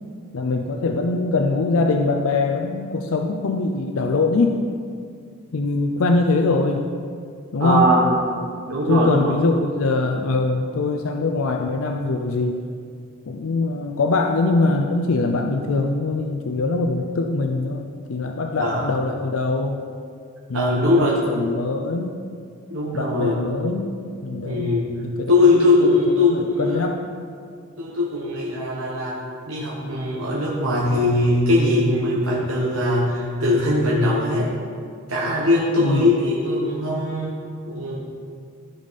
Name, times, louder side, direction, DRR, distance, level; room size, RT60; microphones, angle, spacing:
voice 1, 0.3-4.6 5.5-6.8 7.5-7.9 8.9-12.6 13.3-19.8 20.5-22.2 22.9-24.7 25.2-25.6 26.3-27.0 35.8-36.1, left 3 dB, 80° left, 4 dB, 0.5 m, -22 dB
voice 2, 7.6-8.0 8.4-9.3 18.6-18.9 20.5-21.2 22.7-23.4 24.4-24.9 25.3-26.8 27.8-29.2 29.5-34.5 35.1-37.3 37.7-38.0, left 2 dB, 85° right, -5 dB, 1.2 m, -20 dB
13.5 x 5.2 x 4.1 m, 2.2 s
head